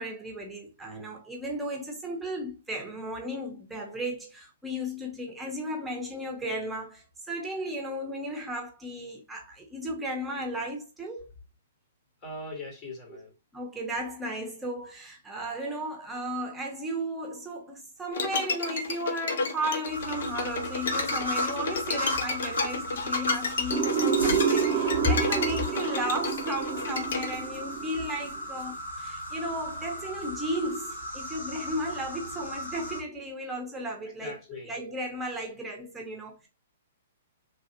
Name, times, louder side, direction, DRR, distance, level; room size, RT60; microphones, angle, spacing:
voice 1, 0.0-11.3 13.5-34.4 34.6-36.5, equal, 10° right, 0.9 m, -34 dB
voice 2, 12.2-13.3 34.0-34.8, left 2 dB, 30° left, 1.3 m, -40 dB
Bowed string instrument, 18.1-27.3, left 4 dB, 65° left, 0.7 m, -32 dB
sound 1, 19.9-33.0, equal, 85° left, 1.5 m, -36 dB
sound 2, 23.7-28.4, right 7 dB, 40° right, 0.5 m, -28 dB
3.2 x 2.4 x 2.9 m
hypercardioid pair, 120°, 0 cm